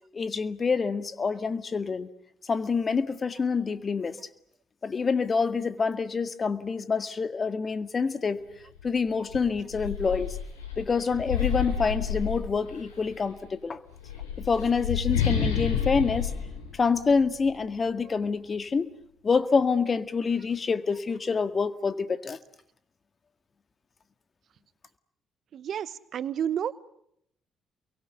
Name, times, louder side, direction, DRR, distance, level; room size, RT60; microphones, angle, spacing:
voice 1, 0.1-2.1 2.5-4.2 4.8-8.4 8.8-10.4 10.8-13.8 14.4-16.3 16.7-18.9 19.2-22.4, left 5 dB, 40° left, 1.8 m, -27 dB
sound 1, 8.8-8.9 9.3-12.9 13.9-17.5, left 8 dB, 90° left, 4.8 m, -30 dB
voice 2, 25.5-26.8, right 9 dB, 60° right, 1.0 m, -31 dB
29.5 x 23.5 x 8.2 m
hypercardioid pair, 45°, 0 cm